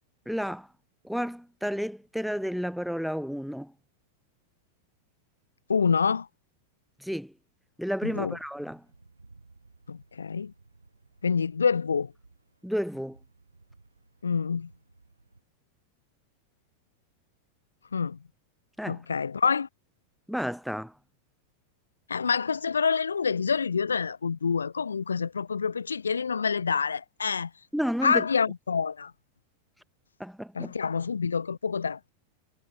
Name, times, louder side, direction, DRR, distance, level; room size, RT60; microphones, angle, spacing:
voice 1, 0.3-0.7 1.0-3.7 7.0-7.3 7.8-8.8 12.6-13.2 18.8-19.0 20.3-20.9 27.7-28.3 30.2-30.7, equal, ahead, 0.8 m, -31 dB
voice 2, 5.7-6.3 8.0-8.4 9.9-10.5 11.2-12.1 14.2-14.7 17.9-18.2 18.9-19.7 22.1-27.5 28.0-29.1 30.6-32.0, left 6 dB, 75° left, 0.4 m, -27 dB
sound 1, 8.0-15.4, right 3 dB, 80° right, 4.6 m, -59 dB
figure-of-eight pair, 90°, 0 cm